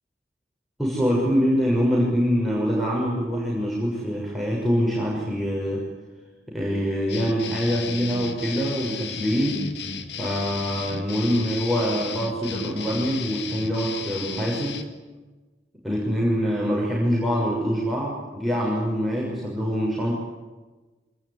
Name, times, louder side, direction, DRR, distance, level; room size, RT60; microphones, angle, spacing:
voice 1, 0.8-5.8 6.5-9.6 10.2-14.8 15.8-20.1, equal, ahead, -5 dB, 6.4 m, -24 dB
sound 1, 7.1-14.8, left 6 dB, 75° left, 2.6 m, -34 dB
26.0 x 20.5 x 10.0 m, 1.2 s
head